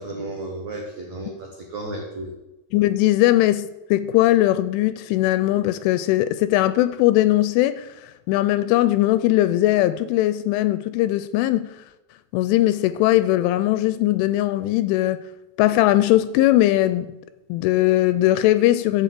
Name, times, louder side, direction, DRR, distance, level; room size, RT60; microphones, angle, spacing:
voice 1, 0.0-2.3, right 2 dB, 80° right, 1.6 m, -33 dB
voice 2, 2.7-7.9 8.3-11.7 12.3-15.2 15.6-17.1 17.5-19.0, left 15 dB, 85° left, 3.0 m, -19 dB
12.0 x 6.7 x 7.5 m
omnidirectional pair, 5.7 m